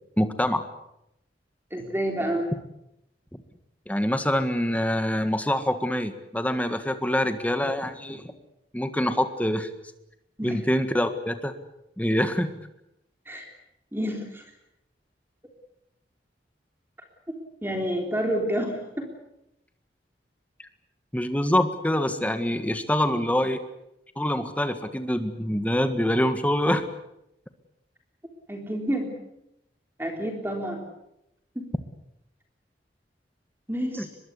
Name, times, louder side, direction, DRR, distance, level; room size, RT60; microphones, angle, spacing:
voice 1, 0.2-0.6 3.9-8.3 8.7-9.7 10.4-11.5 12.0-12.5 21.1-23.6 24.1-26.8 34.0-34.1, left 1 dB, 10° left, 8 dB, 1.7 m, -25 dB
voice 2, 1.7-2.5 10.4-10.6 13.3-13.5 13.9-14.4 17.3-19.1 28.5-29.2 30.0-30.8 31.6-31.7 33.7-34.1, equal, 15° right, 2 dB, 3.6 m, -29 dB
24.0 x 22.0 x 8.4 m, 0.84 s
head